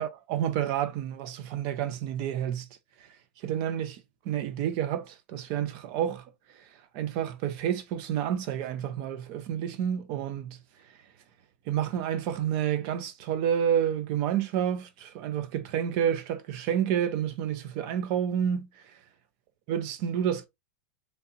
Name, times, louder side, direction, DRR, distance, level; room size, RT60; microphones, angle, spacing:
voice 1, 0.0-2.7 3.4-6.2 6.9-10.6 11.7-18.7 19.7-20.4, right 9 dB, 55° right, 0.8 m, -29 dB
3.4 x 2.7 x 2.8 m
hypercardioid pair, 110°, 6 cm